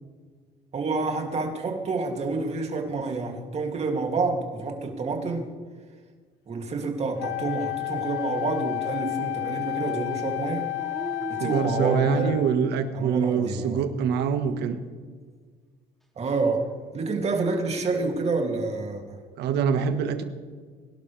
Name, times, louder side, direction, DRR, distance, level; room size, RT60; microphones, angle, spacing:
voice 1, 0.7-5.5 6.5-10.7 11.3-12.4 12.9-13.8 16.2-19.2, right 3 dB, 40° right, 2 dB, 2.8 m, -28 dB
Wind instrument woodwind instrument, 7.2-12.7, left 18 dB, 85° left, 0.9 m, -31 dB
Dog, 10.7-12.6 13.3-14.1 16.3-17.2, right 1 dB, ahead, 2.8 m, -42 dB
voice 2, 11.4-14.8 19.4-20.2, right 6 dB, 80° right, 8 dB, 1.6 m, -24 dB
23.0 x 12.0 x 3.5 m, 1.5 s
cardioid pair, 110°, 17 cm